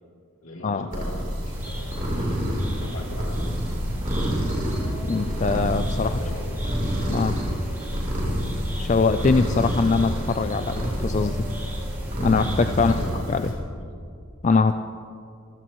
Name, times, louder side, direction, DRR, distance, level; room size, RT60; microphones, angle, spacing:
voice 1, 0.4-4.7 6.0-6.8 8.1-8.4 12.7-13.9, equal, 65° left, -1 dB, 2.9 m, -41 dB
sound 1, 0.9-13.5, equal, 35° right, 3.7 m, -28 dB
sound 2, 1.5-13.0, equal, 10° right, 2.1 m, -36 dB
voice 2, 5.1-6.1 7.1-7.4 8.8-11.4 12.2-12.9 13.3-13.5 14.4-14.7, left 4 dB, 30° left, 8 dB, 0.3 m, -22 dB
27.0 x 15.5 x 3.1 m, 2.4 s
head